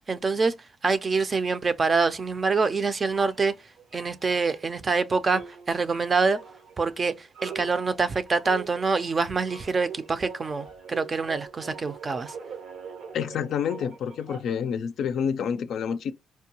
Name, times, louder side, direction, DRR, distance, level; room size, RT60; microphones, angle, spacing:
voice 1, 0.1-0.5 0.8-3.5 3.9-5.4 5.7-6.4 6.8-12.3, right 4 dB, 35° right, 0.5 m, -25 dB
sound 1, 3.1-4.9 5.2-14.7, right 6 dB, 80° right, 0.9 m, -43 dB
voice 2, 13.1-16.1, left 7 dB, 70° left, 0.4 m, -28 dB
4.4 x 2.2 x 2.9 m
cardioid pair, 90°, 0 cm